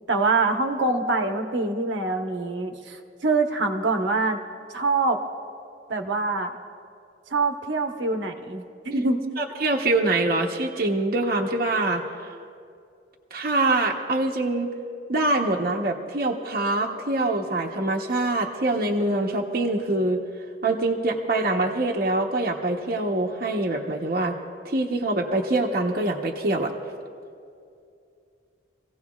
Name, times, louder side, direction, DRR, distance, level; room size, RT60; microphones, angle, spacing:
voice 1, 0.1-4.4 4.7-5.2 5.9-6.5 7.3-9.4, right 3 dB, 85° right, 4 dB, 1.1 m, -25 dB
voice 2, 9.4-12.0 13.3-14.7 15.1-20.2 20.6-24.4 24.6-26.7, right 2 dB, 55° right, 0 dB, 0.9 m, -24 dB
26.0 x 16.0 x 2.3 m, 2.5 s
head